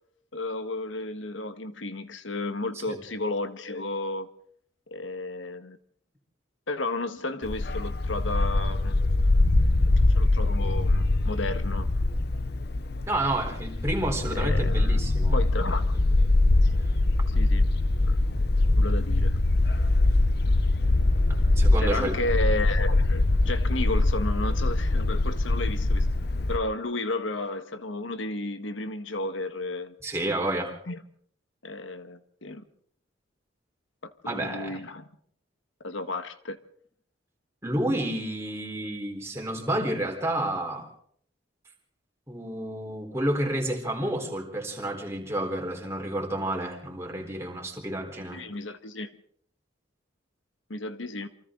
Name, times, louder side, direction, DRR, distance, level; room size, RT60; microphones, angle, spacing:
voice 1, 0.3-4.3 4.9-5.8 6.7-9.0 10.1-11.9 14.3-15.1 15.3-16.3 17.3-17.7 18.0-18.2 18.7-19.4 21.8-26.1 26.5-29.9 30.9-31.0 31.6-32.6 34.0-35.1 35.8-36.6 48.3-49.1 50.7-51.3, left 2 dB, 80° left, 1.5 m, -33 dB
Bark, 7.4-26.6, left 2 dB, 55° left, 0.8 m, -23 dB
voice 2, 13.1-15.4 21.3-22.1 30.0-30.8 34.3-34.8 37.6-40.9 42.3-48.4, right 1 dB, 15° right, 4.0 m, -30 dB
28.0 x 24.5 x 3.9 m
head